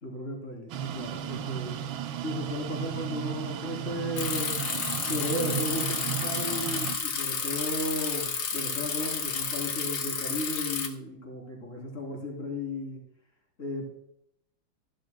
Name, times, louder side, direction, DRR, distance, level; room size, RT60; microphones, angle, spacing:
voice 1, 0.0-1.8 2.2-4.5 5.1-13.0 13.6-14.0, left 1 dB, 35° left, -1 dB, 3.6 m, -35 dB
sound 1, 0.7-7.0, right 10 dB, 75° right, 1.5 m, -35 dB
Bicycle, 4.2-10.9, left 6 dB, 65° left, 1.9 m, -31 dB
15.5 x 11.5 x 2.2 m, 0.76 s
omnidirectional pair, 2.3 m